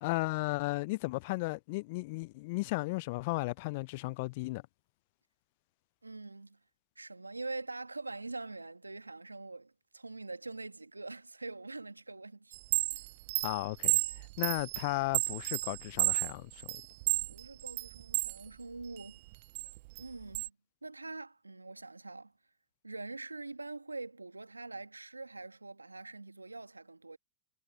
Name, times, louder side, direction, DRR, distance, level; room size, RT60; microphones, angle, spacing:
voice 1, 0.0-4.6 13.4-14.0 14.4-16.8, left 24 dB, 55° left, 0.6 m, -35 dB
voice 2, 6.0-6.6 6.9-12.5 12.9-13.1 17.3-19.2 20.0-20.5 20.8-22.3 22.8-27.2, right 3 dB, 90° right, 1.7 m, -44 dB
Chime, 12.5-18.4 18.8-20.5, right 24 dB, 55° right, 0.5 m, -32 dB
figure-of-eight pair, 95°, 0 cm